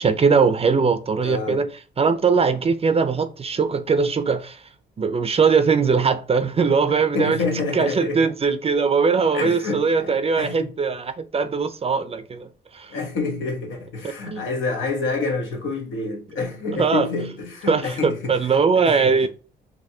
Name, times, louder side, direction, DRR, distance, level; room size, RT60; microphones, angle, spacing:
voice 1, 0.0-1.7 2.0-4.6 5.0-7.4 7.7-12.5 12.7-12.9 14.3-14.4 16.7-17.1 17.7-19.3, right 5 dB, 30° right, 0.5 m, -20 dB
voice 2, 1.2-1.7 6.9-8.3 9.3-10.7 12.9-18.6 18.8-19.3, left 3 dB, 75° left, 1.2 m, -28 dB
5.2 x 3.0 x 2.7 m
cardioid pair, 90°, 20 cm